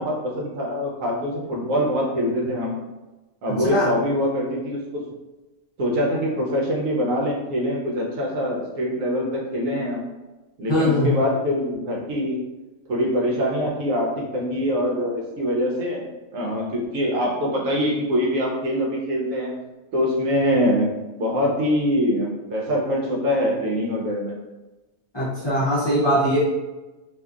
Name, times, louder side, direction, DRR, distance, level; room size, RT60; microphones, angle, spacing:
voice 1, 0.0-2.7 3.4-5.0 5.8-10.0 10.6-12.4 12.9-16.1 16.3-19.5 19.9-24.4, equal, 75° right, -2 dB, 1.1 m, -24 dB
voice 2, 10.7-11.1 25.1-26.4, equal, 30° left, -9 dB, 0.5 m, -21 dB
2.7 x 2.5 x 2.3 m, 1.1 s
omnidirectional pair, 1.4 m